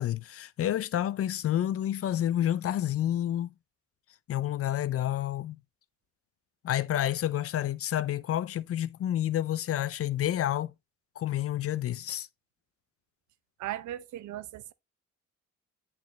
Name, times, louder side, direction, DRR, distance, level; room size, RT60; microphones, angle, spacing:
voice 1, 0.0-3.5 4.3-5.6 6.6-10.7 11.2-12.3, left 12 dB, 50° left, 0.5 m, -29 dB
voice 2, 13.6-14.7, right 13 dB, 70° right, 0.6 m, -37 dB
8.3 x 4.3 x 2.9 m
cardioid pair, 90°, 30 cm